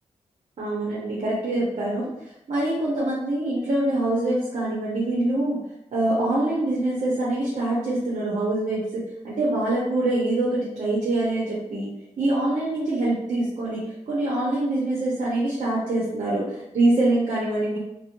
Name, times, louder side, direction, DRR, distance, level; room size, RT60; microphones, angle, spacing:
voice 1, 0.6-2.1 2.5-5.6 5.9-11.9 12.2-17.8, right 2 dB, 60° right, -7 dB, 0.7 m, -24 dB
2.4 x 2.1 x 2.9 m, 0.83 s
wide cardioid pair, 100°, 13 cm